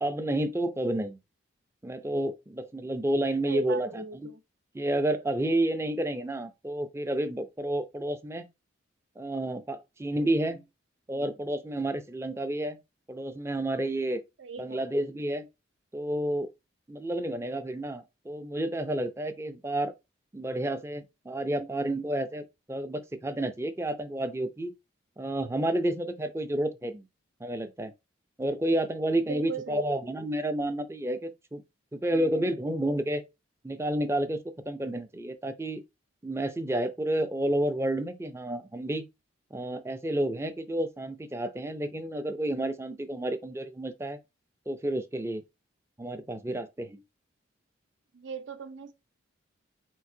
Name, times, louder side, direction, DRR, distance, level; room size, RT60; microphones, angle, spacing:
voice 1, 0.0-1.2 1.8-4.3 4.7-8.5 9.2-10.6 11.1-12.8 13.1-14.2 14.6-15.5 15.9-16.5 16.9-19.9 20.3-24.7 25.2-27.0 27.4-27.9 28.4-31.6 31.9-33.2 33.6-34.4 34.6-35.8 36.2-39.1 39.5-44.2 44.7-45.4 46.0-47.0, right 1 dB, 15° right, 0.4 m, -30 dB
voice 2, 3.4-4.4 14.4-14.8 29.2-29.8 48.1-48.9, right 6 dB, 70° right, 0.7 m, -38 dB
4.5 x 4.0 x 2.7 m
head